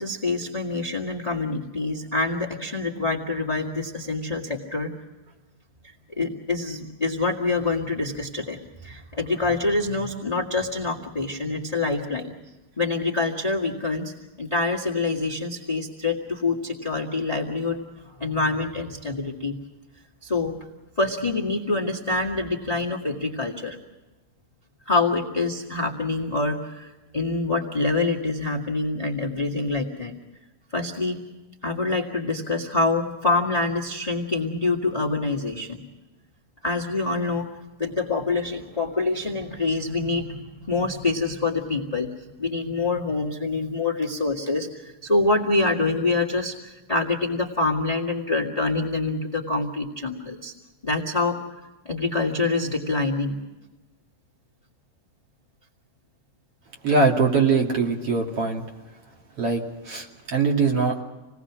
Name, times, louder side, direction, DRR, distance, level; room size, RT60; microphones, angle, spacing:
voice 1, 0.0-4.9 6.2-12.3 12.8-14.1 14.4-17.8 18.2-19.6 20.2-20.6 21.0-23.8 24.9-30.1 30.7-31.2 31.6-35.8 36.6-37.5 37.8-42.1 42.4-50.5 50.8-51.4 51.8-53.4, left 3 dB, 15° left, 0 dB, 1.2 m, -26 dB
voice 2, 56.8-58.6 59.4-61.0, right 4 dB, 45° right, 0 dB, 3.3 m, -22 dB
28.0 x 19.5 x 6.1 m, 1.1 s
omnidirectional pair, 3.9 m